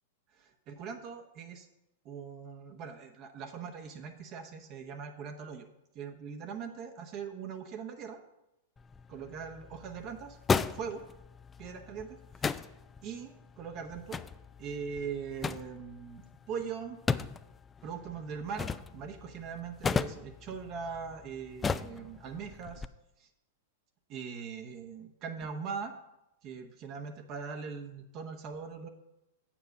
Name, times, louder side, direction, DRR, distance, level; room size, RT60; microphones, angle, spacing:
voice 1, 0.4-1.7 2.0-5.7 5.9-8.2 9.1-10.4 10.7-11.0 11.6-12.6 13.0-14.2 14.6-17.0 17.8-22.8 23.2-23.3 24.1-25.9 26.4-28.9, right 6 dB, 40° right, 4 dB, 1.1 m, -41 dB
sound 1, 8.8-22.9, left 5 dB, 15° left, 0.4 m, -37 dB
7.9 x 7.4 x 5.5 m, 0.89 s
hypercardioid pair, 105°, 0 cm